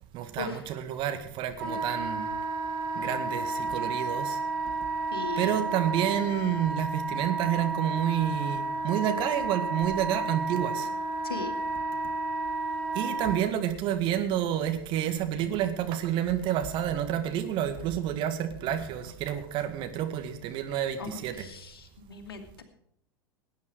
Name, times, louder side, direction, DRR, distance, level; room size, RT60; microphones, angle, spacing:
voice 1, 0.1-2.3 3.0-4.4 5.4-10.9 12.9-21.5, right 10 dB, 40° right, 1.9 m, -29 dB
Wind instrument woodwind instrument, 1.6-13.4, right 3 dB, 60° right, 5.8 m, -32 dB
voice 2, 5.1-5.6 11.2-11.5 21.0-22.6, left 4 dB, 70° left, 2.2 m, -38 dB
18.5 x 9.6 x 4.8 m
figure-of-eight pair, 85°, 13 cm